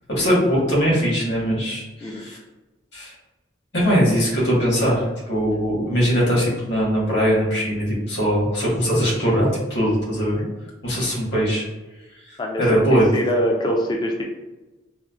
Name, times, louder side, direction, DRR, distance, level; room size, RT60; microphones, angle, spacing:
voice 1, 0.1-2.4 2.9-3.1 3.7-10.4 10.8-11.6 12.3-13.1, equal, 60° left, -4 dB, 1.2 m, -21 dB
voice 2, 12.4-14.2, equal, 20° left, 0 dB, 0.3 m, -24 dB
4.3 x 2.0 x 2.3 m, 1.1 s
head